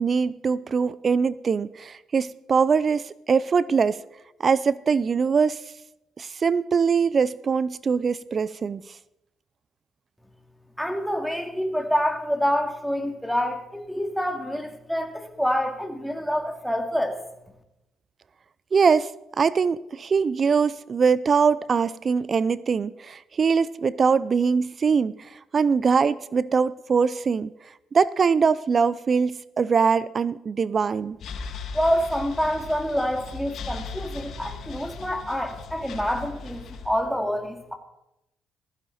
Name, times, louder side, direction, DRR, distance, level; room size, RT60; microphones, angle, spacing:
voice 1, 0.0-4.0 4.4-5.6 6.2-8.8 18.7-19.1 19.4-25.1 25.5-27.5 27.9-31.2, right 5 dB, 45° right, 0.5 m, -22 dB
voice 2, 10.8-17.2 31.7-37.7, equal, ahead, 2.7 m, -27 dB
sound 1, 31.2-37.0, left 4 dB, 65° left, 1.7 m, -38 dB
16.5 x 14.5 x 4.3 m
supercardioid pair, 55°, 0 cm